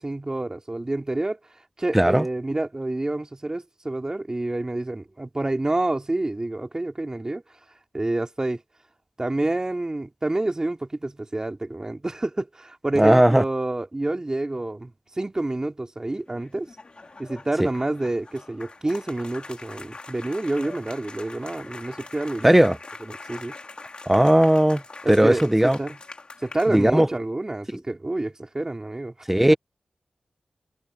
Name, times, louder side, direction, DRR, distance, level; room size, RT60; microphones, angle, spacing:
voice 1, 0.0-1.4 1.8-7.4 7.9-8.6 9.2-16.7 17.2-22.6 23.0-23.5 25.0-26.0 26.4-29.1, right 2 dB, 30° right, 2.9 m, -28 dB
voice 2, 1.9-2.2 13.0-13.4 17.6-17.7 22.4-22.8 24.1-24.8 25.1-25.8 26.7-27.1 29.3-29.5, right 1 dB, 10° right, 0.3 m, -17 dB
sound 1, 16.2-27.2, left 3 dB, 45° left, 2.0 m, -43 dB
wide cardioid pair, 65°, 2 cm